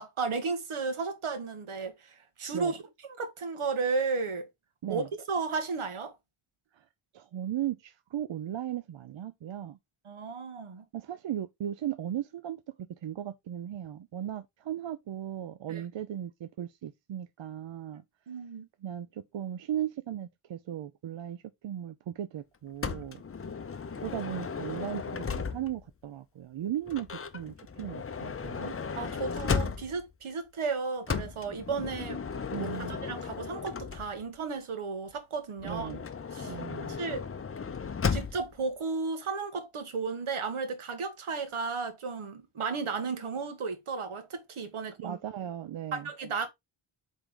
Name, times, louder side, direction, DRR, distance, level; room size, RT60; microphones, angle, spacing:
voice 1, 0.0-2.8 3.1-4.5 4.9-6.1 10.0-10.8 15.7-15.8 18.3-18.7 29.0-32.2 32.6-35.9 36.3-36.5 36.8-37.3 38.1-45.2 45.9-46.5, right 4 dB, 85° right, 1.6 m, -34 dB
voice 2, 7.1-9.8 10.9-18.0 18.8-23.2 24.0-28.7 32.5-33.0 35.6-36.0 36.4-36.9 45.0-46.1, right 11 dB, 65° right, 0.6 m, -37 dB
Motor vehicle (road) / Sliding door, 22.8-25.9 26.9-30.1 31.1-34.4 35.6-38.6, left 5 dB, 30° left, 0.6 m, -35 dB
8.0 x 3.7 x 3.7 m
wide cardioid pair, 145°, 49 cm